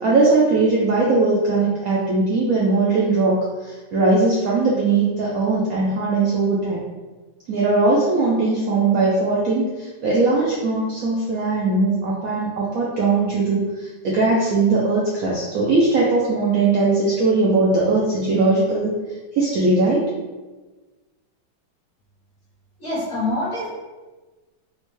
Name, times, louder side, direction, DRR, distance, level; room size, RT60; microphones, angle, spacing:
voice 1, 0.0-6.8 7.5-18.9 19.3-20.0, right 3 dB, 90° right, -5 dB, 0.7 m, -19 dB
voice 2, 22.8-23.7, left 2 dB, 40° left, -9 dB, 1.2 m, -25 dB
4.3 x 2.1 x 3.0 m, 1.3 s
omnidirectional pair, 2.1 m